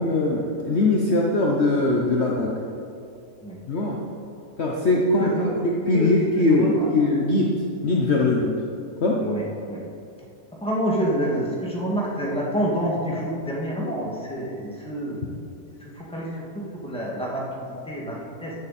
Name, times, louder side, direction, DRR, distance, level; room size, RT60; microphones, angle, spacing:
voice 1, 0.0-2.5 3.7-4.0 4.6-7.4 7.8-8.5 9.0-9.2, left 2 dB, 50° left, -2 dB, 1.1 m, -21 dB
voice 2, 5.2-5.5 5.9-6.9 9.2-9.8 10.6-15.2 15.8-16.3 16.8-18.5, right 1 dB, 5° left, -5 dB, 2.0 m, -27 dB
14.0 x 8.1 x 4.3 m, 2.5 s
omnidirectional pair, 1.6 m